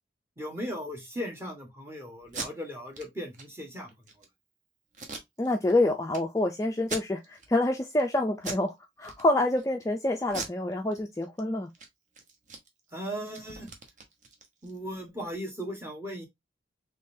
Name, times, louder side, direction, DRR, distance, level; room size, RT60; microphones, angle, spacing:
voice 1, 0.4-4.1 12.9-13.7 14.6-16.3, equal, 15° right, 1.2 m, -37 dB
Packing tape duct tape, 2.2-2.5 2.9-3.1 3.3-3.4 3.9-4.3 4.9-5.7 6.1-6.2 6.8-7.5 7.9-8.1 8.4-8.7 9.0-9.6 10.3-11.4 11.7-11.9 12.1-14.8, right 4 dB, 40° right, 0.9 m, -40 dB
voice 2, 5.4-11.7, left 2 dB, 15° left, 0.4 m, -27 dB
3.8 x 3.4 x 2.6 m
head